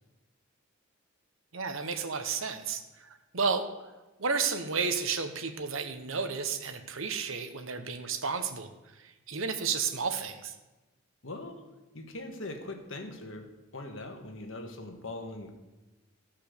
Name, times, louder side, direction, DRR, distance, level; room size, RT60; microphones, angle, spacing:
voice 1, 1.5-2.8 3.3-3.7 4.2-8.7 9.3-10.5, right 5 dB, 70° right, 8 dB, 1.1 m, -32 dB
voice 2, 11.2-11.6 11.9-13.5 13.7-15.5, left 2 dB, 65° left, 4 dB, 1.6 m, -41 dB
15.0 x 5.6 x 6.7 m, 1.1 s
head